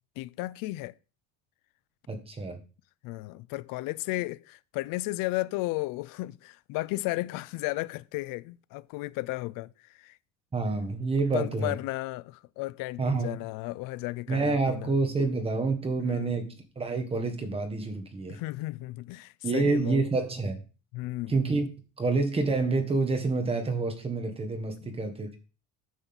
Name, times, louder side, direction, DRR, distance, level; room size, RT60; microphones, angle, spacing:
voice 1, 0.2-0.9 3.0-10.2 11.2-14.9 16.0-16.3 18.3-20.0 20.9-21.3 24.8-25.0, left 20 dB, 70° left, 0.5 m, -34 dB
voice 2, 2.1-2.6 10.5-11.7 13.0-13.4 14.3-18.4 19.4-20.6 21.3-21.7 22.0-25.4, right 3 dB, 15° right, 1.5 m, -28 dB
9.1 x 4.0 x 7.1 m
cardioid pair, 160°, 34 cm